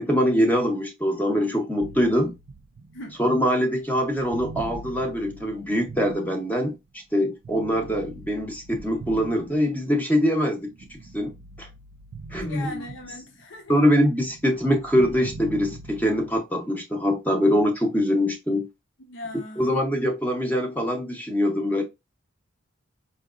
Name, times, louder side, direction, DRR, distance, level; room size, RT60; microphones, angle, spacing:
voice 1, 0.0-2.3 3.2-11.3 11.6-11.7 12.3-12.8 13.7-18.7 19.6-21.8, equal, 10° left, 0.6 m, -23 dB
sound 1, 1.8-6.9 7.4-10.1 10.6-13.4 13.7-16.4, right 2 dB, 70° right, 0.4 m, -43 dB
voice 2, 12.4-13.8 19.0-19.8, left 1 dB, 70° left, 0.7 m, -38 dB
4.5 x 2.8 x 2.4 m
head